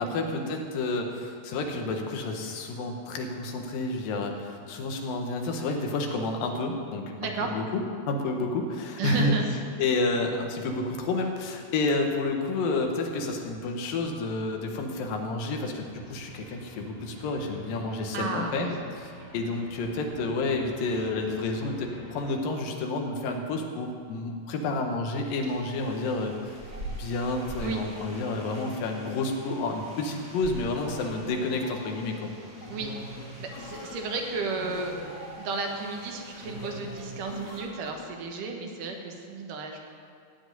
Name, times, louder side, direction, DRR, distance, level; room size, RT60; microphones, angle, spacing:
voice 1, 0.0-7.1 7.4-9.3 9.8-26.6 27.0-32.3, left 3 dB, 85° left, 3 dB, 3.0 m, -30 dB
voice 2, 7.2-7.6 9.0-9.5 18.1-18.5 27.6-27.8 32.7-35.0 35.4-39.8, right 3 dB, 75° right, 2 dB, 2.8 m, -33 dB
sound 1, 15.7-22.3, right 1 dB, 15° right, 1.9 m, -48 dB
sound 2, 25.3-37.6, right 1 dB, 30° right, 2.2 m, -45 dB
sound 3, 30.7-38.2, left 1 dB, 55° left, 3.0 m, -43 dB
16.0 x 5.4 x 9.2 m, 2.3 s
omnidirectional pair, 3.9 m